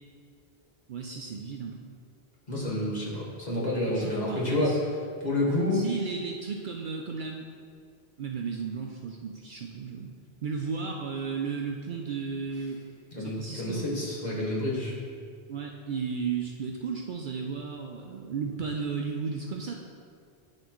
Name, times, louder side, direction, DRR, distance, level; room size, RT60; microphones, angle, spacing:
voice 1, 0.9-1.9 3.9-4.8 5.7-7.5 8.2-10.1 10.4-12.8 13.2-13.9 15.5-19.7, right 5 dB, 60° right, 1 dB, 0.6 m, -34 dB
voice 2, 2.5-4.9 5.2-5.8 13.1-15.0, left 1 dB, 45° left, -6 dB, 1.7 m, -29 dB
11.5 x 4.3 x 3.0 m, 2.2 s
omnidirectional pair, 1.0 m